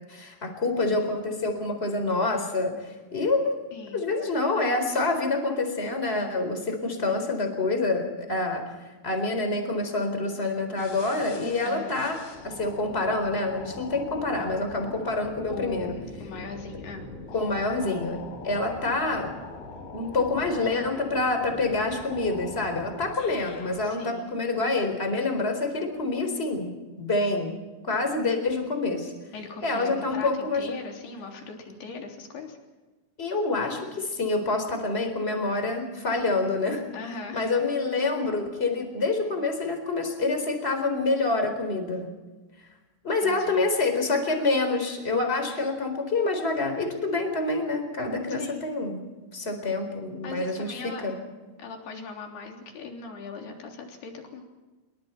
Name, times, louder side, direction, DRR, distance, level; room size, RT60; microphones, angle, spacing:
voice 1, 0.1-3.6 3.9-8.6 9.0-12.2 12.4-15.9 17.3-18.2 18.4-19.4 19.9-29.1 29.6-30.6 33.2-36.8 37.3-42.1 43.0-51.2, left 3 dB, 15° left, 5 dB, 3.8 m, -27 dB
voice 2, 3.7-4.1 11.6-12.0 15.5-17.1 23.8-24.3 29.3-32.6 36.9-37.6 43.2-43.6 48.4-48.7 50.2-51.0 51.6-54.4, left 4 dB, 60° left, 1 dB, 5.3 m, -39 dB
sound 1, 10.8-23.9, left 3 dB, 80° left, 6.1 m, -42 dB
27.5 x 23.5 x 4.5 m, 1.2 s
omnidirectional pair, 5.2 m